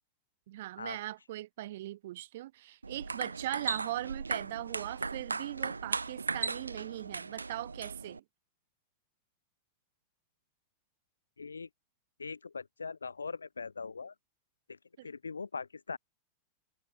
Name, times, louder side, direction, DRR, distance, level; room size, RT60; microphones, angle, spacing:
voice 1, 0.5-8.2 15.0-15.1, right 15 dB, 55° right, 3.2 m, -40 dB
sound 1, 2.8-8.2, right 4 dB, 80° right, 2.3 m, -37 dB
voice 2, 11.4-11.7 12.2-14.1 14.7-14.8 15.0-16.0, left 5 dB, 75° left, 4.3 m, -41 dB
figure-of-eight pair, 90°, 0 cm